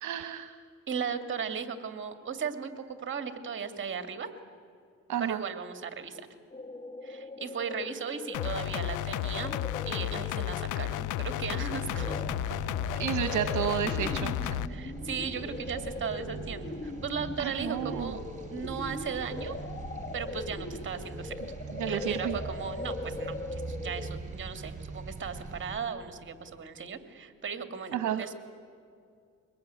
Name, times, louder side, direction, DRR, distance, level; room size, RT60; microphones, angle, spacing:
voice 1, 0.0-0.6 5.1-5.4 13.0-14.6 17.4-18.1 21.8-22.4 27.9-28.2, right 9 dB, 70° right, 9 dB, 1.0 m, -31 dB
voice 2, 0.9-4.3 5.2-6.2 7.0-9.6 9.8-12.2 14.7-18.2 18.5-19.6 20.1-21.3 21.9-28.3, right 6 dB, 40° right, 8 dB, 2.1 m, -36 dB
sound 1, 6.5-24.1, left 3 dB, 30° left, 1.2 m, -41 dB
sound 2, 8.3-14.7, left 14 dB, 85° left, 0.6 m, -33 dB
sound 3, 11.4-25.8, right 3 dB, 25° right, 5.2 m, -41 dB
23.0 x 19.5 x 9.3 m, 2.4 s
cardioid pair, 90°, 30 cm